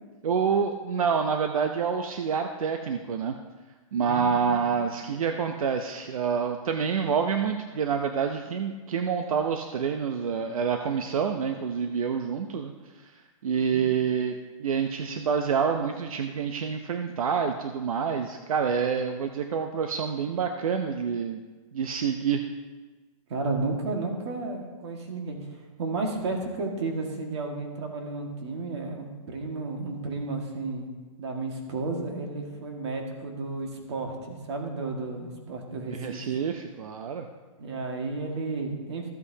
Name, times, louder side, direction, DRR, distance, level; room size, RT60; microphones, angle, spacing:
voice 1, 0.2-3.4 3.9-12.7 13.0-13.1 13.4-21.4 21.7-22.5 36.0-37.3, right 6 dB, 80° right, 6 dB, 0.7 m, -27 dB
voice 2, 3.9-4.6 13.5-13.8 23.3-25.4 25.8-30.9 31.2-36.4 37.6-39.1, right 3 dB, 55° right, 2 dB, 1.9 m, -33 dB
14.5 x 8.2 x 2.8 m, 1.3 s
hypercardioid pair, 170°, 18 cm